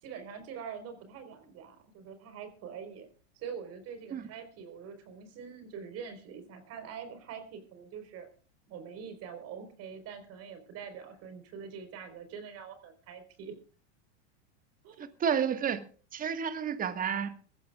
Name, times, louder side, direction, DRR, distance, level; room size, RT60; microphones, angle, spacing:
voice 1, 0.0-3.1 3.4-8.3 8.7-13.5 14.8-15.0, right 7 dB, 45° right, 4.2 m, -44 dB
voice 2, 15.0-15.8 16.1-17.4, right 7 dB, 25° right, 1.6 m, -31 dB
22.0 x 15.0 x 2.4 m
hypercardioid pair, 110°, 34 cm